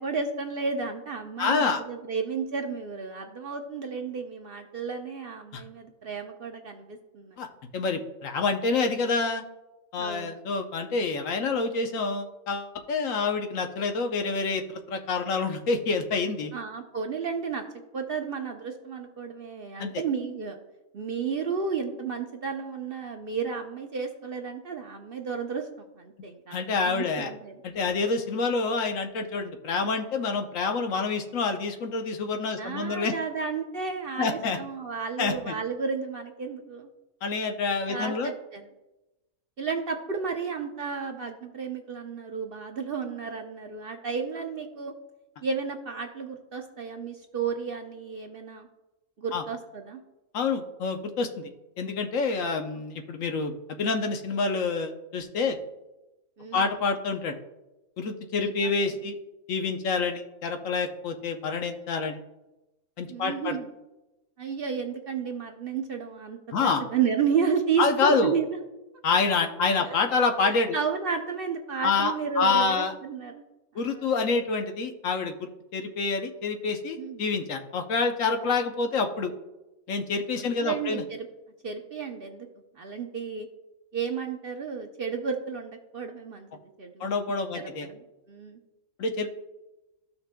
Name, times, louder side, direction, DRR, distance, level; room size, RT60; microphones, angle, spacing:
voice 1, 0.0-7.4 10.0-10.4 16.5-17.6 17.9-20.6 20.9-27.5 32.6-36.9 37.9-38.7 39.6-44.9 45.4-48.7 49.2-50.0 56.4-56.7 58.4-59.0 63.1-63.7 64.4-68.6 69.9-70.0 70.7-73.4 73.8-74.1 77.0-77.2 80.4-81.3 81.6-82.5 82.8-83.5 83.9-87.1 87.5-88.6, right 6 dB, 55° right, 4 dB, 0.7 m, -32 dB
voice 2, 1.4-1.8 5.5-5.6 7.4-7.5 7.7-9.4 9.9-16.5 19.8-20.0 26.5-27.3 27.6-33.1 34.2-34.6 35.2-35.5 37.2-38.3 49.3-49.4 50.3-51.5 51.8-55.6 56.5-57.4 58.0-59.2 59.5-62.2 63.0-63.6 66.5-66.8 67.8-68.3 69.0-70.8 71.8-72.9 73.7-79.3 79.9-81.0 87.0-87.9 89.0-89.3, left 4 dB, 65° left, 5 dB, 1.1 m, -27 dB
14.0 x 5.8 x 2.2 m, 1.0 s
omnidirectional pair, 1.5 m